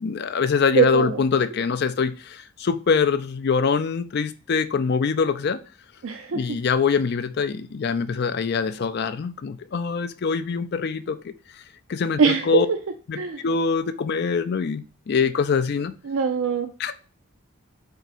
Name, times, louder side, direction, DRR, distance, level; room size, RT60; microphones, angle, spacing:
voice 1, 0.0-5.6 6.3-11.6 11.9-12.7 13.1-15.9 16.8-16.9, left 5 dB, 50° left, 0.4 m, -24 dB
voice 2, 0.7-1.2 6.0-6.4 12.2-12.6 13.1-13.4 16.0-16.7, right 6 dB, 65° right, 0.4 m, -22 dB
4.5 x 2.7 x 4.1 m
head